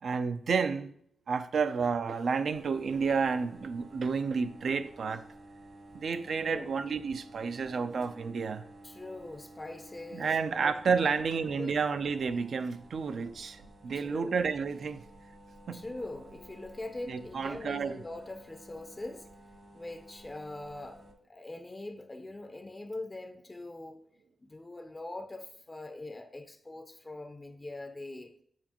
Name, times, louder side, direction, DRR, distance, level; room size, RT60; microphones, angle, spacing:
voice 1, 0.0-0.9 1.3-5.2 5.9-8.6 10.1-15.0 15.7-15.8 17.1-18.0, right 5 dB, 70° right, 0.4 m, -30 dB
sound 1, 2.5-21.1, right 1 dB, 55° right, 1.3 m, -53 dB
voice 2, 8.8-10.8 11.0-11.1 11.5-11.7 13.9-14.3 15.7-19.3 19.7-24.0 24.4-28.3, left 2 dB, 20° left, 0.5 m, -42 dB
7.4 x 6.9 x 2.9 m
wide cardioid pair, 100°, 0 cm